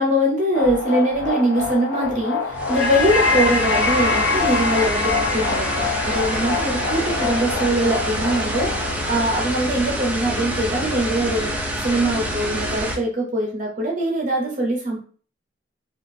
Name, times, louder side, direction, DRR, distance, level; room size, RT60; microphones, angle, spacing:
voice 1, 0.0-11.6 11.8-15.0, right 1 dB, 40° right, -1 dB, 0.7 m, -22 dB
sound 1, 0.5-8.9, left 4 dB, 80° left, 0.6 m, -24 dB
sound 2, 2.5-13.0, equal, 10° right, 0.4 m, -27 dB
3.6 x 2.4 x 2.6 m, 0.41 s
head